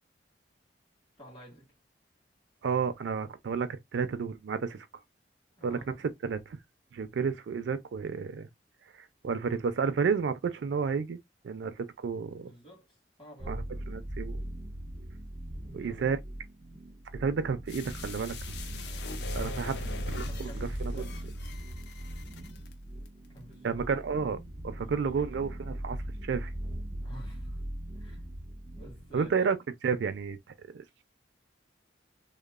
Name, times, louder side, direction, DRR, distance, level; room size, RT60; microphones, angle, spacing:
voice 1, 1.2-1.7 5.6-6.0 12.3-13.7 15.6-16.2 19.3-21.2 23.3-23.8 24.7-25.4 27.0-27.6 28.0-28.2 28.8-29.3, equal, 25° left, 1.5 m, -50 dB
voice 2, 2.6-4.9 5.6-6.6 6.9-8.5 9.2-11.2 11.4-12.5 13.5-14.4 15.7-16.2 17.1-18.6 19.3-19.7 20.1-21.1 23.6-26.5 29.1-29.6 29.8-30.4 30.7-31.0, right 5 dB, 75° right, 0.4 m, -31 dB
sound 1, 13.4-29.3, right 1 dB, 15° right, 0.5 m, -39 dB
sound 2, 17.7-22.7 23.1-23.2, left 5 dB, 60° left, 0.4 m, -43 dB
2.9 x 2.0 x 2.3 m
head